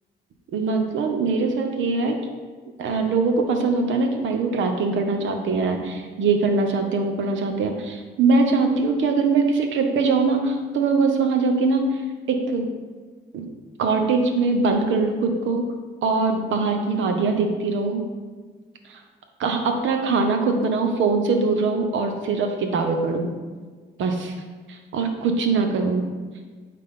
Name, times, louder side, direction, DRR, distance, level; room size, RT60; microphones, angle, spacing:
voice 1, 0.5-2.2 2.8-12.0 12.3-12.7 13.3-13.5 13.8-15.6 16.0-18.0 18.9-19.0 19.4-23.3 24.0-24.3 24.7-26.1, right 4 dB, 75° right, 5 dB, 1.0 m, -22 dB
8.8 x 4.3 x 3.7 m, 1.5 s
cardioid pair, 90°, 20 cm